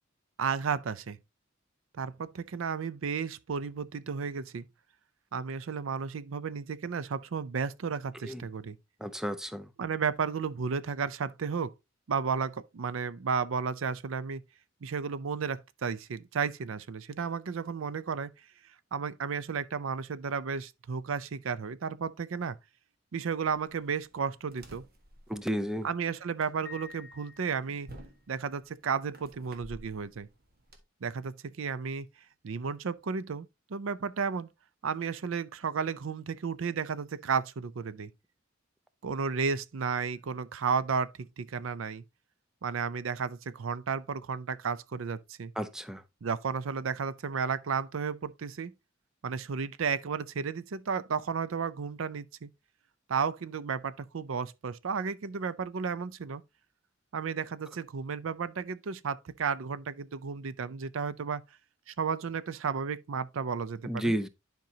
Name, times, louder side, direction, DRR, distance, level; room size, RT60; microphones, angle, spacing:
voice 1, 0.4-1.2 1.9-4.6 5.3-8.8 9.8-11.7 12.1-14.4 14.8-18.3 18.9-22.6 23.1-24.8 25.8-27.9 28.3-30.3 31.0-32.1 32.4-34.5 34.8-38.1 39.0-42.0 42.6-45.5 46.2-48.7 49.2-52.5 53.1-56.4 57.1-61.4 61.9-64.1, right 6 dB, 85° right, 0.5 m, -33 dB
voice 2, 9.0-9.7 25.3-25.9 45.6-46.0 63.8-64.3, equal, 5° right, 0.5 m, -32 dB
sound 1, 23.5-30.8, right 1 dB, 50° right, 1.5 m, -54 dB
Piano, 26.6-28.1, left 5 dB, 15° left, 1.9 m, -50 dB
10.5 x 5.3 x 2.8 m
head